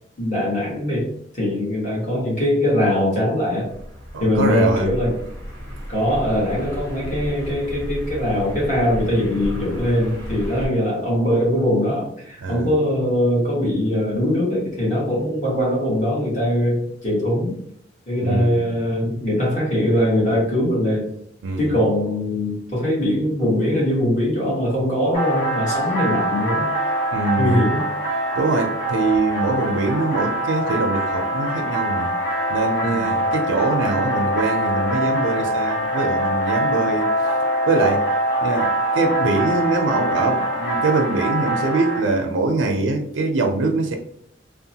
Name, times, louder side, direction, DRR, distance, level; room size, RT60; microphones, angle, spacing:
voice 1, 0.2-3.7 4.2-5.2 5.9-17.6 18.1-21.1 21.6-26.7 27.4-27.9 32.8-33.1, left 1 dB, 40° left, -6 dB, 1.3 m, -21 dB
sound 1, 3.7-10.7, equal, 15° left, 0.9 m, -33 dB
voice 2, 4.1-4.9 12.4-12.7 18.2-18.6 21.4-21.7 27.1-27.7 28.3-32.1 32.5-37.1 37.7-38.1 38.4-38.7 38.9-44.0, right 3 dB, 90° right, 3 dB, 0.4 m, -23 dB
sound 2, 25.1-42.0, right 1 dB, 65° left, 1.1 m, -23 dB
2.9 x 2.1 x 2.7 m, 0.69 s
head